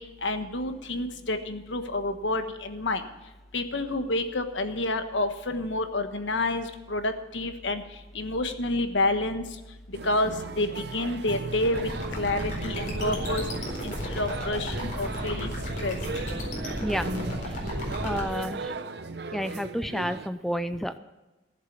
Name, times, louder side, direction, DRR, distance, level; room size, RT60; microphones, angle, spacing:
voice 1, 0.0-3.1 3.5-13.5 13.8-16.0 18.4-18.7, left 2 dB, 85° left, 8 dB, 1.3 m, -29 dB
sound 1, 9.9-20.3, right 3 dB, 60° right, 0.7 m, -37 dB
sound 2, 11.5-18.2, equal, 45° left, 4.3 m, -33 dB
voice 2, 18.0-18.7 19.3-21.0, equal, ahead, 10 dB, 0.5 m, -30 dB
15.0 x 7.5 x 7.3 m, 1.1 s
head